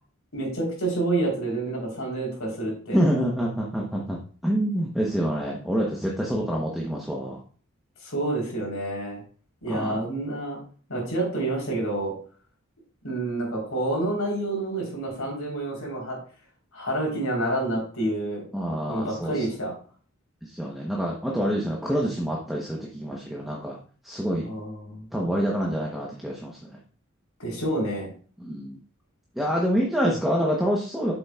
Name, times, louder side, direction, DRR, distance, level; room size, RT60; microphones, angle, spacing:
voice 1, 0.3-3.0 8.0-9.2 9.6-10.6 10.9-12.1 13.0-16.2 16.7-18.4 18.9-19.7 24.4-25.0 27.4-28.1, right 2 dB, 75° left, -1 dB, 3.8 m, -28 dB
voice 2, 2.9-7.4 9.7-10.1 18.5-19.5 20.4-23.8 24.0-24.5 25.1-26.7 28.4-28.8 29.3-31.1, equal, ahead, -3 dB, 0.9 m, -27 dB
8.3 x 6.9 x 2.4 m, 0.41 s
head